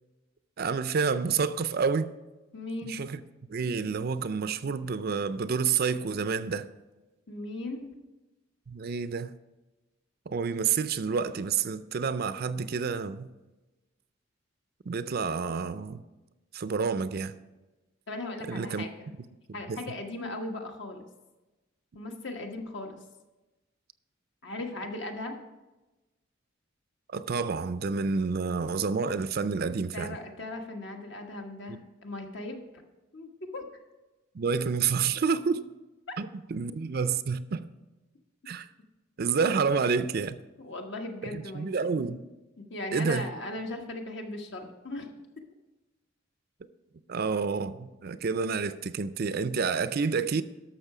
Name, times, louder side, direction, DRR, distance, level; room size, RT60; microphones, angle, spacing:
voice 1, 0.6-2.1 2.8-3.2 3.5-6.7 8.7-9.3 10.3-13.3 14.9-16.0 16.5-17.3 18.5-18.9 19.7-19.8 27.1-30.2 31.7-31.8 34.3-35.7 36.2-37.7 38.5-38.7 39.2-40.4 41.2-42.2 42.9-43.3 47.1-50.4, right 5 dB, 50° right, 0.5 m, -29 dB
voice 2, 2.5-3.0 7.3-7.9 18.1-19.1 19.5-21.1 21.9-23.0 24.4-25.4 29.9-32.6 33.1-33.6 40.6-41.8 42.6-45.1, left 2 dB, 60° left, 1.4 m, -38 dB
12.0 x 6.6 x 4.9 m
head